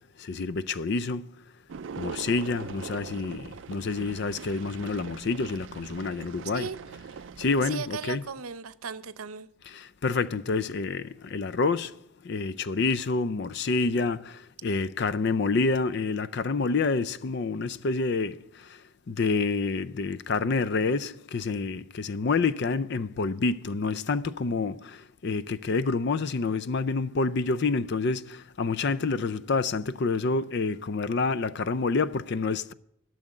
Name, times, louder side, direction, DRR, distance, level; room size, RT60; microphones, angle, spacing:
voice 1, 0.3-1.2 2.0-6.7 7.4-8.2 9.7-11.9 12.3-14.3 14.6-18.4 19.1-24.9 25.2-28.2 28.6-32.7, left 4 dB, 50° left, 0.4 m, -28 dB
sound 1, 1.7-7.8, right 6 dB, 55° right, 0.4 m, -42 dB
voice 2, 7.6-9.5, right 6 dB, 85° right, 0.7 m, -36 dB
12.5 x 6.4 x 9.8 m
head